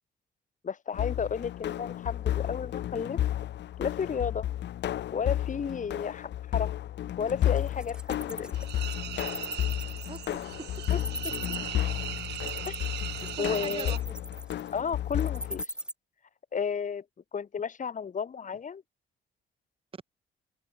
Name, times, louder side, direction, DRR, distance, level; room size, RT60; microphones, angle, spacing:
voice 1, 0.6-3.2 3.8-4.5 5.1-6.8 7.2-8.6 10.9-11.0 12.7-12.8 13.4-13.9 14.7-15.7 16.5-17.0 17.3-18.8, left 6 dB, 40° left, 1.4 m, -32 dB
sound 1, 0.9-15.6, left 12 dB, 60° left, 0.7 m, -32 dB
Wild animals, 7.3-15.9, right 1 dB, 5° right, 1.3 m, -40 dB
sound 2, 8.5-14.0, right 13 dB, 60° right, 0.4 m, -39 dB
voice 2, 10.1-10.8 13.1-14.0 19.9-20.0, right 5 dB, 25° right, 1.2 m, -42 dB
open air
cardioid pair, 90°, 20 cm